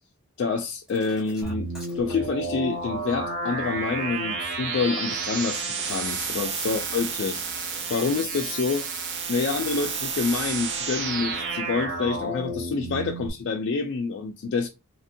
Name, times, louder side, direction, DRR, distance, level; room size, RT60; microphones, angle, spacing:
voice 1, 0.4-1.7 1.9-14.7, left 4 dB, 55° left, 0.3 m, -28 dB
sound 1, 0.9-2.3 5.8-8.7 11.3-11.5, left 1 dB, 5° right, 1.0 m, -46 dB
sound 2, 1.4-13.3, right 4 dB, 55° right, 0.6 m, -31 dB
2.8 x 2.6 x 2.6 m
head